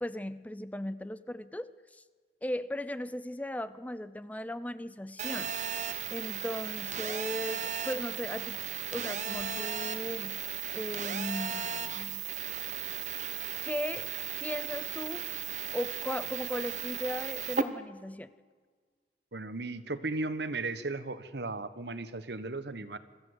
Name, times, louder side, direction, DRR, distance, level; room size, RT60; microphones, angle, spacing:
voice 1, 0.0-2.0 2.4-5.6 6.1-8.6 8.9-10.4 10.7-12.3 13.6-14.1 14.4-15.3 15.7-18.3, left 1 dB, 10° left, 14 dB, 0.5 m, -37 dB
Telephone, 5.2-17.6, right 7 dB, 40° right, 1.1 m, -36 dB
voice 2, 19.3-23.0, right 3 dB, 75° right, 13 dB, 1.2 m, -36 dB
24.0 x 14.5 x 8.0 m, 1.5 s
head